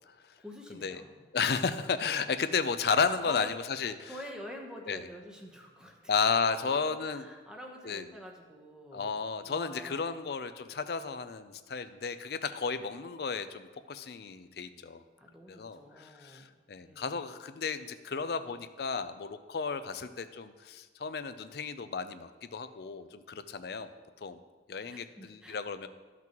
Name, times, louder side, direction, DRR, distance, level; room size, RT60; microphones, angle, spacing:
voice 1, 0.4-1.3 3.2-3.5 4.0-6.1 6.4-10.2 15.2-17.2 24.9-25.5, equal, 5° right, 0 dB, 0.9 m, -48 dB
voice 2, 1.3-4.1 4.9-5.0 6.1-7.2 7.9-8.0 8.9-15.0 15.5-23.9 24.2-24.4 24.7-25.9, left 5 dB, 60° left, 11 dB, 0.4 m, -33 dB
14.0 x 6.0 x 3.0 m, 1.4 s
head